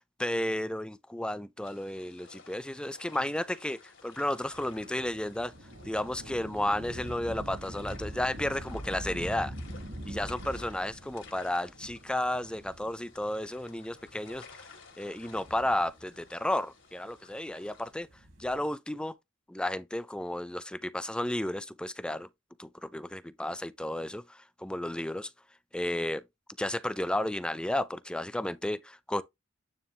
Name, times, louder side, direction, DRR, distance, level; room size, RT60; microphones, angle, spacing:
voice 1, 0.0-5.5 5.8-9.5 10.1-14.7 15.0-18.1 18.4-19.1 19.5-22.3 22.6-25.3 25.7-26.2 26.6-29.2, left 1 dB, 5° left, 0.4 m, -33 dB
sound 1, 1.6-17.9, left 5 dB, 70° left, 2.1 m, -55 dB
Thunder / Rain, 4.4-13.4 14.1-14.2 15.1-16.4 17.9-18.7, equal, 70° right, 2.9 m, -43 dB
9.4 x 3.3 x 3.5 m
head